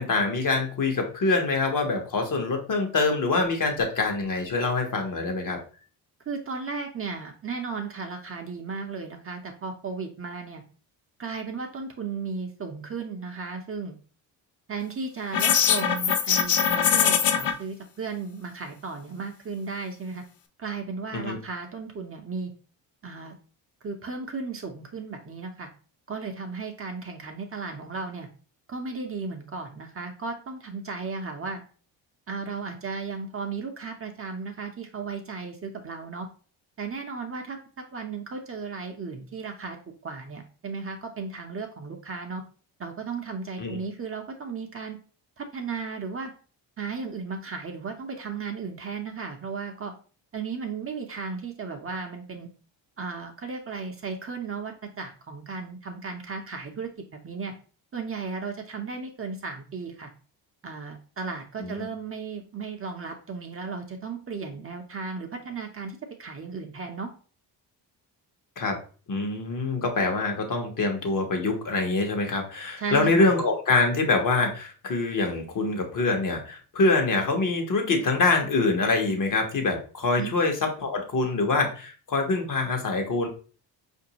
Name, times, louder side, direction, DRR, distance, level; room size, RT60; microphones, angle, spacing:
voice 1, 0.0-5.6 21.1-21.4 43.6-43.8 61.6-61.9 68.6-68.8 69.1-83.3, left 3 dB, 45° left, 3 dB, 1.0 m, -25 dB
voice 2, 6.3-10.6 11.2-14.0 14.7-20.2 20.6-22.5 23.0-23.4 23.8-25.7 26.1-28.3 28.7-31.6 32.3-36.3 36.8-39.8 40.0-42.4 42.8-45.0 45.4-46.3 46.8-49.9 50.3-52.5 53.0-56.9 57.2-57.5 57.9-60.1 60.6-67.1 72.8-73.3 80.2-80.3, right 4 dB, 30° right, 4 dB, 0.7 m, -35 dB
sound 1, 15.3-17.5, left 8 dB, 70° left, 0.7 m, -22 dB
4.5 x 2.6 x 2.8 m, 0.38 s
cardioid pair, 85°, 43 cm